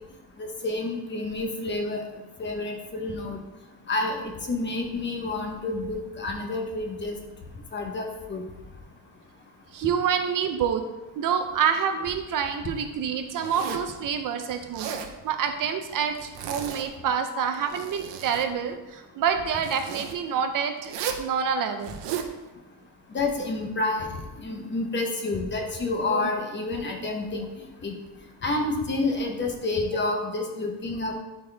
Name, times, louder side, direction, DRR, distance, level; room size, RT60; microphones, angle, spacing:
voice 1, 0.4-2.0 2.4-3.4 3.9-7.2 7.7-8.4 23.1-27.9 28.4-31.2, left 2 dB, 25° left, 2 dB, 0.8 m, -29 dB
voice 2, 9.7-10.8 11.2-14.9 15.2-21.9 26.1-26.3, right 7 dB, 50° right, 7 dB, 0.5 m, -27 dB
Zipper (clothing), 13.4-13.9 14.6-15.1 16.1-16.9 17.5-18.5 19.6-20.1 20.8-21.3 21.8-22.3, right 8 dB, 80° right, 0.8 m, -35 dB
10.5 x 4.1 x 3.3 m, 1.1 s
cardioid pair, 180°, 43 cm